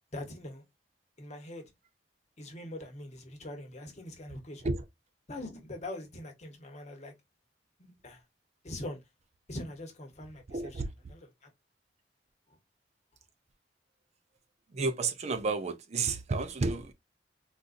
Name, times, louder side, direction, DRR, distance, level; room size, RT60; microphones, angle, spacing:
voice 1, 0.1-0.6 1.2-1.6 2.4-4.7 5.3-7.1 7.8-8.2 8.6-9.0 9.5-11.3, left 1 dB, 40° left, 1.0 m, -43 dB
voice 2, 10.5-10.9 14.7-16.9, right 3 dB, 40° right, 0.4 m, -31 dB
3.7 x 2.5 x 2.5 m
head